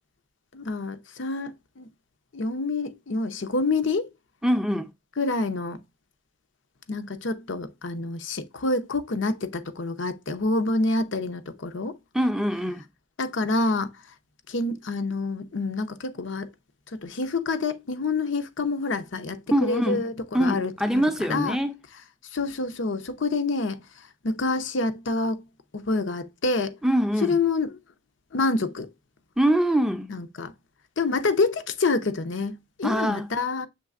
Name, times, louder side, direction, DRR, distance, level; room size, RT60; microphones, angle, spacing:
voice 1, 0.5-1.9 2.3-4.1 5.2-5.8 6.9-12.0 13.2-13.9 14.5-16.5 16.9-21.6 22.3-25.4 25.7-26.8 27.2-27.7 28.3-28.9 30.1-30.5 31.0-33.7, left 3 dB, 80° left, 0.7 m, -27 dB
voice 2, 4.4-4.9 12.1-12.8 19.5-20.0 20.3-21.8 26.8-27.4 29.4-30.1 32.8-33.3, equal, 5° right, 0.4 m, -23 dB
6.6 x 3.2 x 2.4 m
head